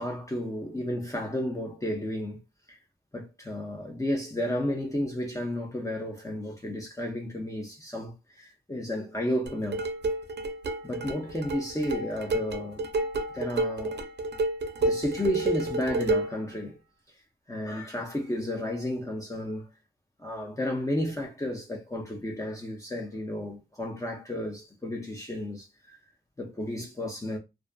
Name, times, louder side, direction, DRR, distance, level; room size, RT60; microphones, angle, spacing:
voice 1, 0.0-2.4 2.7-2.8 3.1-9.9 10.8-12.8 13.3-14.1 14.8-16.8 17.5-19.7 20.2-26.0 26.4-27.4, left 1 dB, 20° left, 0.5 m, -32 dB
sound 1, 9.5-16.4, right 2 dB, 80° right, 0.4 m, -30 dB
2.4 x 2.4 x 2.2 m
cardioid pair, 55°, 17 cm